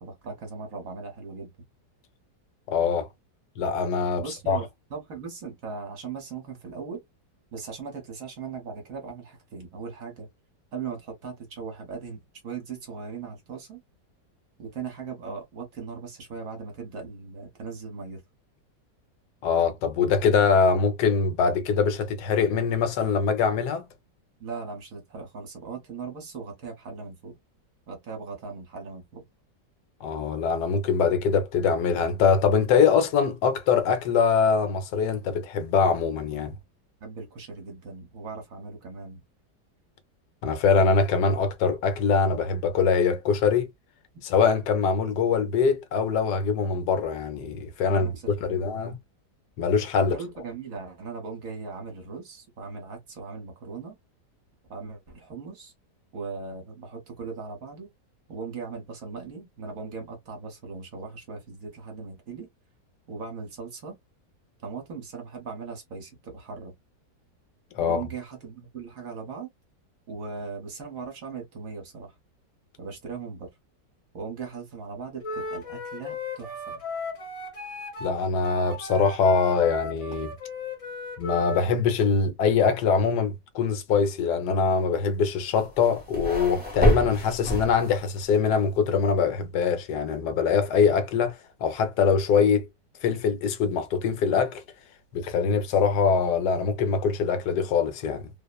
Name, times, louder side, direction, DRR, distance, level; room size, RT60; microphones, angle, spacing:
voice 1, 0.0-1.5 4.2-7.0 7.5-10.3 10.7-13.8 14.6-18.2 24.4-27.4 27.9-29.2 37.0-39.2 47.9-48.8 50.1-54.0 54.7-55.7 56.1-57.9 58.3-62.5 63.1-64.0 64.6-66.7 67.8-69.5 70.1-72.1 72.8-73.5 74.1-76.8, right 5 dB, 55° right, 1.2 m, -38 dB
voice 2, 2.7-3.1 3.6-4.6 19.4-23.8 30.0-36.5 40.4-43.7 44.2-48.1 48.4-49.0 49.6-50.2 67.8-68.0 78.0-80.3 81.2-92.6 93.0-94.6 95.1-98.3, left 5 dB, 75° left, 1.1 m, -23 dB
Wind instrument woodwind instrument, 75.2-81.7, left 2 dB, 35° left, 0.5 m, -36 dB
sound 1, 85.5-88.2, right 1 dB, 5° right, 0.9 m, -27 dB
2.9 x 2.0 x 2.2 m
omnidirectional pair, 1.9 m